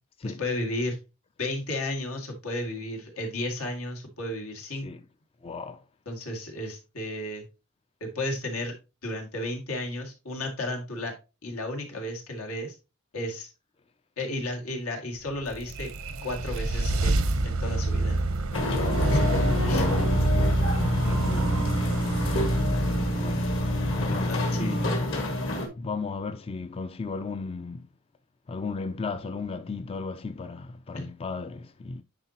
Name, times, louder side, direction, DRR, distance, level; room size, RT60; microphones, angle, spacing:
voice 1, 0.2-1.0 1.4-4.9 6.1-7.5 8.0-8.7 9.0-11.2 11.4-12.8 13.1-13.5 14.2-15.9 16.2-18.3 19.7-19.8 23.9-24.8 30.9-31.1, left 1 dB, 85° left, 2.1 m, -33 dB
voice 2, 5.4-5.8 18.7-19.1 19.7-20.0 21.0-21.6 23.1-23.5 24.0-24.9 25.8-27.8 28.5-32.0, left 4 dB, 25° left, 0.3 m, -35 dB
sound 1, 15.3-24.6, right 2 dB, 85° right, 0.9 m, -27 dB
sound 2, 18.5-25.7, left 1 dB, 60° left, 1.9 m, -27 dB
9.7 x 4.5 x 2.9 m
head